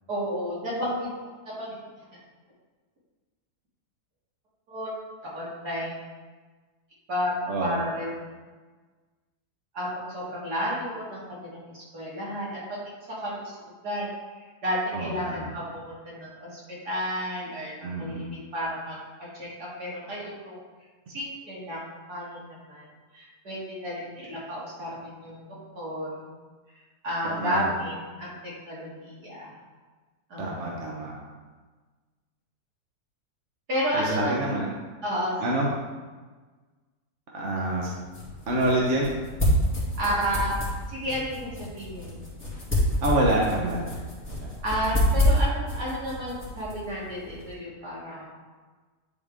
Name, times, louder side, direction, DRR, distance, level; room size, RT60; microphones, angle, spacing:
voice 1, 0.1-1.1 1.5-1.8 4.7-4.9 5.2-5.9 7.1-7.3 7.6-8.1 9.7-12.8 13.2-13.5 13.8-16.6 16.8-19.0 19.3-20.6 21.1-22.9 23.1-25.4 25.7-26.3 27.0-29.5 30.3-30.9 33.7-34.5 35.0-35.3 40.0-42.3 44.6-48.3, equal, 70° right, -7 dB, 2.9 m, -32 dB
voice 2, 7.5-7.8 14.9-15.5 17.8-18.3 27.2-27.7 30.4-31.1 33.9-34.7 35.4-35.7 37.3-37.9 38.5-39.1 43.0-43.9 44.4-44.5, right 1 dB, 50° right, -3 dB, 1.3 m, -27 dB
sound 1, 37.6-47.5, equal, 5° left, 2.4 m, -28 dB
10.5 x 4.4 x 3.6 m, 1.4 s
omnidirectional pair, 1.7 m